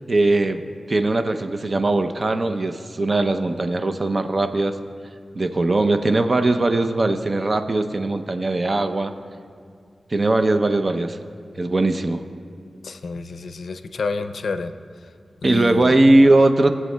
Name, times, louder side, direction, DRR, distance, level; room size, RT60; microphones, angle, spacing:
voice 1, 0.1-0.6 0.9-4.7 5.3-9.1 10.1-11.2 11.6-12.2 15.4-16.7, right 2 dB, 40° right, 8 dB, 0.5 m, -19 dB
voice 2, 12.8-14.7 15.0-15.1 15.4-16.0, left 4 dB, 80° left, 9 dB, 0.4 m, -29 dB
22.0 x 7.4 x 2.2 m, 2.3 s
wide cardioid pair, 75°, 0 cm